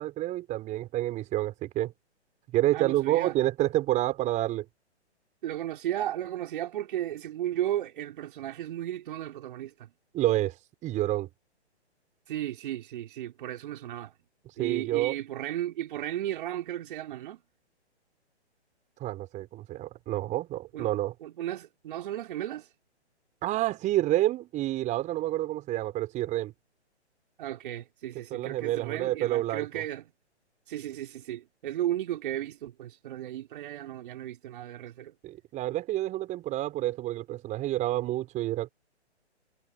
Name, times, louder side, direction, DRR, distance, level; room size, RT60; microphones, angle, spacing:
voice 1, 0.0-1.9 2.5-4.7 10.1-10.6 10.8-11.3 14.6-15.1 19.0-21.1 23.4-26.5 28.3-29.8 35.2-38.7, right 15 dB, 20° right, 6.0 m, -28 dB
voice 2, 2.7-3.3 5.4-9.9 12.3-14.1 14.6-17.4 20.7-20.9 21.2-22.7 27.4-30.0 30.7-35.1, right 12 dB, 45° right, 3.9 m, -34 dB
hypercardioid pair, 135°, 34 cm